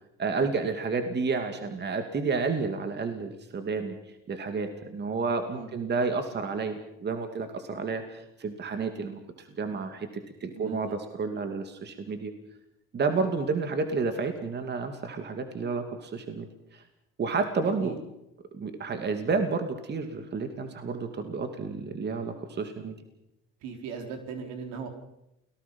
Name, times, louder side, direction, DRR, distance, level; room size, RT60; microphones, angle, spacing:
voice 1, 0.2-4.0 4.3-10.1 10.4-12.3 12.9-16.8 17.2-18.0 18.5-22.9, right 4 dB, 35° right, 6 dB, 2.6 m, -30 dB
voice 2, 10.5-11.0 11.4-11.5 13.1-13.2 17.6-17.9 23.6-24.9, right 5 dB, 75° right, 4 dB, 4.4 m, -39 dB
29.0 x 19.0 x 5.5 m, 0.85 s
supercardioid pair, 90°, 29 cm